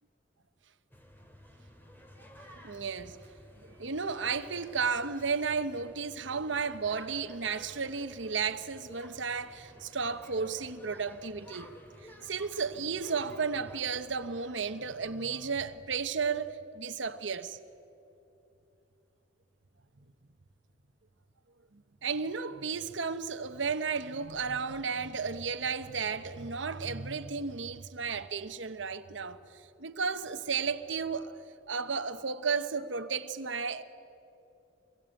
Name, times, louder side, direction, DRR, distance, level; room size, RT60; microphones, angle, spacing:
sound 1, 0.9-15.8, equal, 10° left, 2.5 m, -53 dB
voice 1, 2.6-3.2 3.8-11.7 12.2-17.6 22.0-29.4 29.8-31.3 31.7-33.8, right 5 dB, 75° right, 1.0 m, -33 dB
25.5 x 22.0 x 9.0 m
head